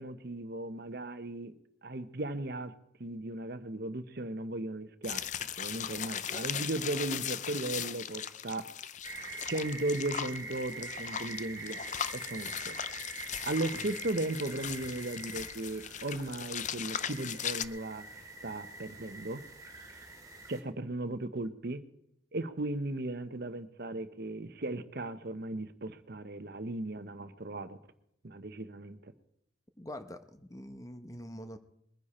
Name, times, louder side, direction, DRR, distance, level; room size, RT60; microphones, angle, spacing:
voice 1, 0.0-1.5 1.8-2.7 3.0-5.3 5.6-8.7 9.5-12.8 13.4-18.1 18.4-19.4 20.5-21.8 22.3-27.8 28.2-29.1, right 2 dB, 55° right, 11 dB, 1.0 m, -36 dB
sound 1, 5.0-17.7, left 9 dB, 40° left, 0.5 m, -38 dB
sound 2, 9.0-20.6, right 3 dB, 20° right, 2.3 m, -45 dB
voice 2, 29.8-31.6, equal, 20° left, 9 dB, 0.9 m, -45 dB
21.5 x 10.0 x 4.3 m, 0.77 s
head